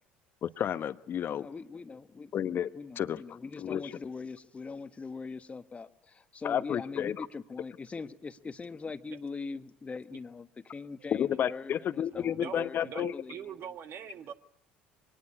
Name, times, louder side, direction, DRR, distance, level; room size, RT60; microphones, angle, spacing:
voice 1, 0.4-1.5 2.3-2.7 3.0-3.2 3.6-3.9 6.4-7.3 11.1-13.1, left 9 dB, 45° left, 13 dB, 1.2 m, -31 dB
voice 2, 1.4-2.3 2.7-12.8 13.1-13.5, left 4 dB, 25° left, 11 dB, 1.3 m, -42 dB
voice 3, 12.1-14.3, right 8 dB, 50° right, 10 dB, 1.6 m, -43 dB
23.5 x 19.5 x 9.9 m, 0.76 s
hypercardioid pair, 65°, 5 cm